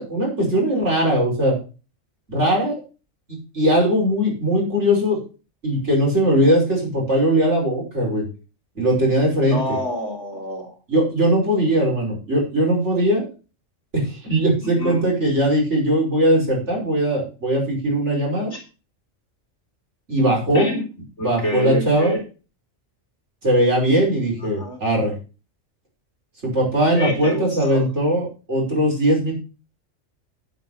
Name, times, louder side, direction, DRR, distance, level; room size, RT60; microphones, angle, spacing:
voice 1, 0.0-1.6 2.3-2.8 3.5-5.2 5.6-8.2 8.8-9.6 10.9-13.2 13.9-18.5 20.1-20.7 21.2-22.1 23.4-25.1 26.4-29.3, right 1 dB, 60° right, -2 dB, 5.9 m, -20 dB
voice 2, 9.5-10.8 14.6-15.0 18.5-18.6 20.5-20.8 21.2-22.2 24.4-24.8 26.9-27.9, equal, 65° left, 1 dB, 3.1 m, -27 dB
9.7 x 8.3 x 5.6 m, 0.34 s
omnidirectional pair, 1.3 m